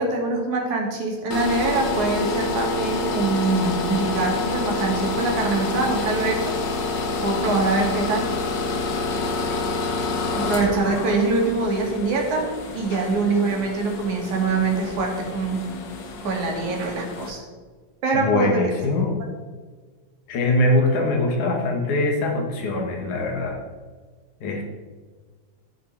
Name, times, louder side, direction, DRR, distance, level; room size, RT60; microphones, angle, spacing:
voice 1, 0.0-6.6 7.2-8.3 10.3-15.6 16.2-17.4 18.0-18.7, right 3 dB, 75° right, 1 dB, 3.7 m, -24 dB
sound 1, 1.3-17.3, left 3 dB, 55° left, 1.3 m, -28 dB
voice 2, 18.1-19.2 20.3-23.6 24.4-24.6, left 2 dB, 75° left, 1 dB, 3.3 m, -22 dB
14.0 x 9.5 x 4.6 m, 1.5 s
omnidirectional pair, 3.4 m